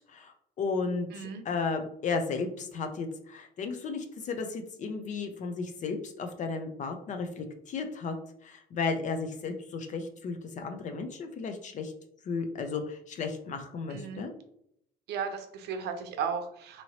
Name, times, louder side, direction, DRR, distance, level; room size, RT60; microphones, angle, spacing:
voice 1, 0.1-8.1 8.4-11.9 12.2-14.3, left 4 dB, 45° left, 6 dB, 0.5 m, -34 dB
voice 2, 1.1-1.4 13.9-14.2 15.1-16.8, right 6 dB, 75° right, 7 dB, 0.6 m, -35 dB
2.9 x 2.8 x 2.7 m, 0.73 s
cardioid pair, 110°, 17 cm